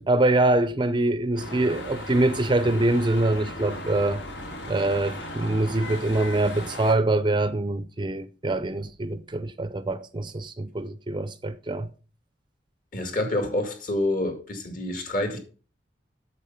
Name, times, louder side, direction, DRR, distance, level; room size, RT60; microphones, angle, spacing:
voice 1, 0.1-4.2 4.7-11.9, right 2 dB, 25° right, 0.6 m, -24 dB
sound 1, 1.4-6.9, left 1 dB, 80° left, 3.5 m, -37 dB
voice 2, 12.9-15.4, left 1 dB, 45° left, 2.3 m, -27 dB
8.6 x 7.0 x 5.6 m
head